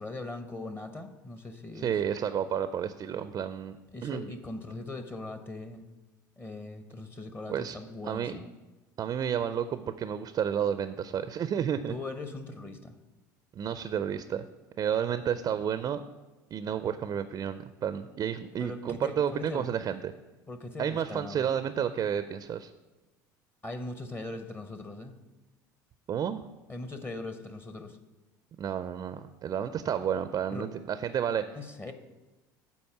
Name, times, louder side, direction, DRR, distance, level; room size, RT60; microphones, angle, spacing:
voice 1, 0.0-2.0 3.9-5.8 6.4-8.5 11.9-12.9 18.6-19.7 20.5-21.5 23.6-25.1 26.7-28.0 30.5-30.7 31.5-31.9, left 2 dB, 20° left, 9 dB, 0.7 m, -40 dB
voice 2, 1.7-3.8 4.0-4.3 7.5-7.8 8.0-8.3 9.0-11.9 13.6-14.4 14.8-16.0 16.5-20.1 20.8-22.7 26.1-26.4 28.6-31.4, right 8 dB, 35° right, 12 dB, 0.4 m, -31 dB
8.4 x 4.3 x 5.7 m, 1.1 s
hypercardioid pair, 65°, 10 cm